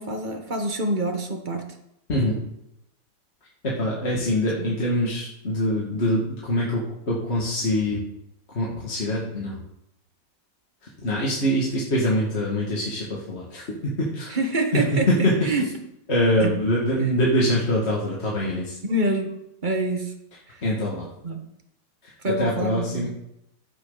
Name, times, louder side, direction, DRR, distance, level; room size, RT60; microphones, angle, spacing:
voice 1, 0.0-1.7 4.6-4.7 14.3-15.8 16.4-16.6 17.0-17.1 18.8-20.1 20.5-20.6 21.2-21.5 22.2-23.1, right 1 dB, 30° right, 5 dB, 1.3 m, -26 dB
voice 2, 3.6-6.8 7.1-8.0 8.5-9.6 11.0-14.4 14.7-15.3 16.1-18.8 20.6-21.1 22.4-23.1, left 1 dB, 35° left, -5 dB, 2.4 m, -24 dB
15.0 x 7.8 x 4.0 m, 0.80 s
omnidirectional pair, 1.9 m